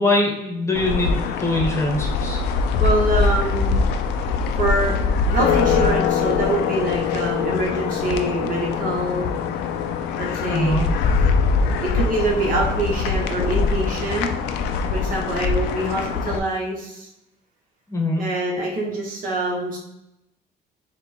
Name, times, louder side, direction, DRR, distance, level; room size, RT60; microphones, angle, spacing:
voice 1, 0.0-2.4 10.5-10.9 17.9-18.2, left 2 dB, 15° left, 0 dB, 1.0 m, -22 dB
sound 1, 0.8-16.4, left 5 dB, 85° left, 0.5 m, -22 dB
voice 2, 2.8-3.8 4.5-5.0 5.3-9.2 10.2-10.8 11.8-14.3 14.9-17.1 18.2-19.8, right 2 dB, 55° right, -1 dB, 1.4 m, -25 dB
4.3 x 2.5 x 4.4 m, 0.86 s
cardioid pair, 110°, 17 cm